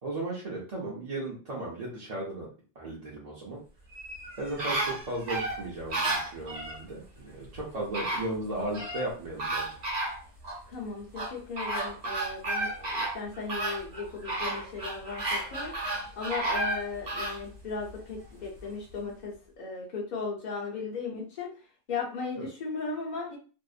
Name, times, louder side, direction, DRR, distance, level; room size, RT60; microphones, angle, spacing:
voice 1, 0.0-2.5 2.8-3.6 4.4-9.8 22.4-22.5, right 2 dB, 45° right, -5 dB, 0.6 m, -36 dB
sound 1, 3.9-6.8 7.6-7.7 7.9-9.1 9.4-10.6 11.1-17.4 17.9-18.0, right 2 dB, 70° right, 1.2 m, -32 dB
voice 2, 10.7-21.5 21.9-23.4, left 4 dB, 50° left, -3 dB, 0.7 m, -37 dB
2.7 x 2.0 x 2.4 m, 0.38 s
omnidirectional pair, 1.1 m